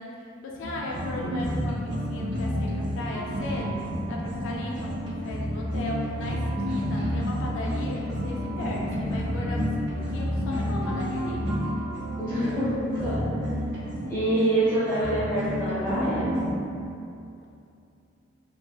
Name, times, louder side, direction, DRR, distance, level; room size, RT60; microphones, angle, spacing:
voice 1, 0.0-11.4, left 1 dB, 70° left, -2 dB, 0.3 m, -37 dB
sound 1, 0.6-16.5, equal, 60° right, 0.5 m, -30 dB
voice 2, 12.2-13.7 14.1-16.3, right 1 dB, 10° left, -14 dB, 0.7 m, -26 dB
3.2 x 2.1 x 2.3 m, 2.6 s
head